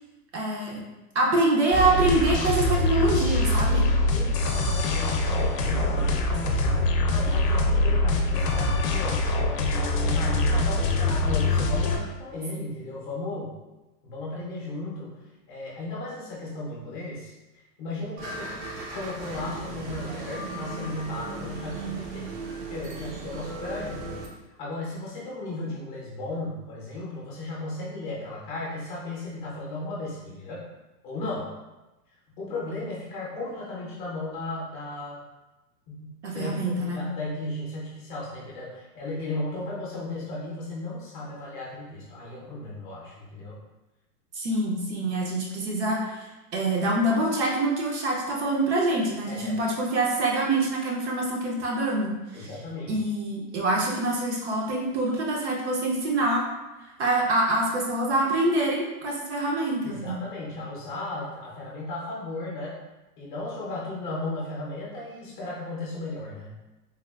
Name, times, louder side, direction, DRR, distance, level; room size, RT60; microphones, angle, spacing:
voice 1, 0.3-0.8 1.1-3.9 36.2-37.1 44.3-52.5 52.9-56.4 57.0-60.2, right 2 dB, 45° right, -2 dB, 0.5 m, -25 dB
sound 1, 1.7-12.0, left 2 dB, 75° left, 0.6 m, -24 dB
voice 2, 4.1-9.6 10.1-13.5 14.0-15.2 15.5-17.3 17.8-18.5 18.9-22.3 22.7-24.2 24.6-30.7 31.0-31.5 32.4-35.2 35.9-43.5 49.3-49.5 52.3-53.1 59.8-62.8 63.2-66.5, left 2 dB, 30° left, -5 dB, 0.6 m, -35 dB
sound 2, 18.2-24.3, right 3 dB, 85° right, 0.8 m, -36 dB
3.4 x 2.3 x 2.3 m, 1.1 s
hypercardioid pair, 155°, 48 cm